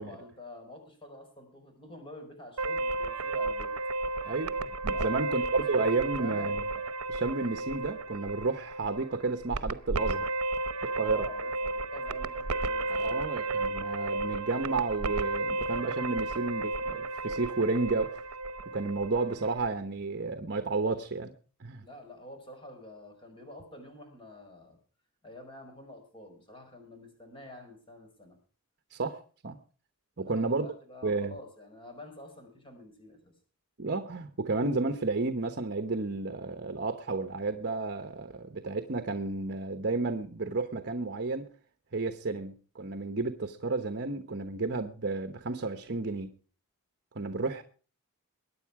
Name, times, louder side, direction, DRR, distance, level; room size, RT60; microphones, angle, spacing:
voice 1, 0.0-3.7 4.9-6.5 11.0-13.3 21.8-24.8 25.2-28.4 30.2-33.3, left 2 dB, 25° left, 4 dB, 5.0 m, -48 dB
sound 1, 2.6-19.7, right 2 dB, 75° right, 0.9 m, -33 dB
voice 2, 4.2-6.6 7.1-10.3 11.0-11.3 12.9-18.2 18.7-21.3 21.6-21.8 28.9-29.6 30.2-30.7 31.0-31.4 33.8-41.5 41.9-46.3 47.1-47.6, right 3 dB, 50° right, 8 dB, 1.0 m, -32 dB
21.5 x 9.6 x 4.8 m, 0.41 s
head